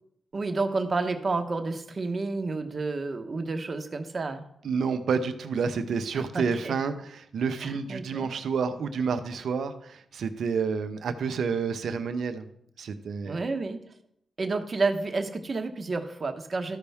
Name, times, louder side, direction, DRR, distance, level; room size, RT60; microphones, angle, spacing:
voice 1, 0.3-4.4 6.1-6.7 7.6-8.3 13.2-13.8 14.4-16.8, right 3 dB, 50° right, 7 dB, 1.1 m, -30 dB
voice 2, 4.6-12.5 12.8-13.4, right 5 dB, 75° right, 9 dB, 0.7 m, -29 dB
13.0 x 5.4 x 3.5 m, 0.74 s
cardioid pair, 55°, 0 cm